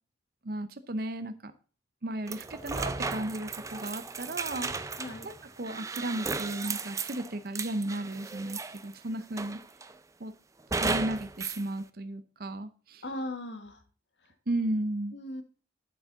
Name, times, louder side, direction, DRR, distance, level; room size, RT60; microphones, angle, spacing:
voice 1, 0.4-1.5 2.0-4.9 5.2-9.6 10.2-10.3 10.8-13.0 14.5-15.2, right 1 dB, 55° right, 10 dB, 0.8 m, -34 dB
sound 1, 2.3-8.9 9.4-10.0 10.7-11.6, right 4 dB, 15° right, 0.4 m, -35 dB
voice 2, 4.9-5.3 13.0-13.8 14.2-14.3 15.1-15.4, left 1 dB, 80° left, 6 dB, 1.7 m, -38 dB
8.1 x 7.3 x 4.0 m, 0.38 s
head